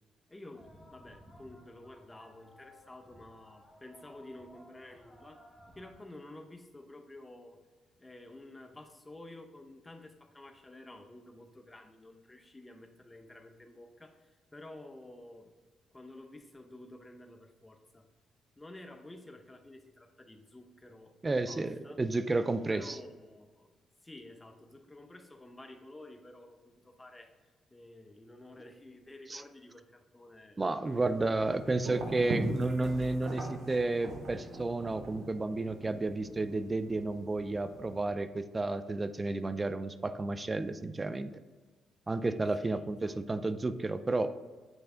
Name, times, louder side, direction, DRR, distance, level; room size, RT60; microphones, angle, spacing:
voice 1, 0.3-5.4 5.7-7.6 8.0-15.5 15.9-18.1 18.6-22.0 22.7-23.7 24.0-27.4 27.7-31.6 42.6-43.2, left 1 dB, 15° left, 5 dB, 0.7 m, -51 dB
sound 1, 0.5-5.9, left 1 dB, ahead, 1.0 m, -57 dB
voice 2, 21.2-23.0 29.3-29.4 30.6-41.4 42.1-44.4, right 2 dB, 25° right, 12 dB, 0.4 m, -32 dB
sound 2, 30.8-38.0, right 2 dB, 70° right, 1.2 m, -41 dB
8.0 x 3.3 x 3.7 m, 1.4 s
cardioid pair, 90°, 0 cm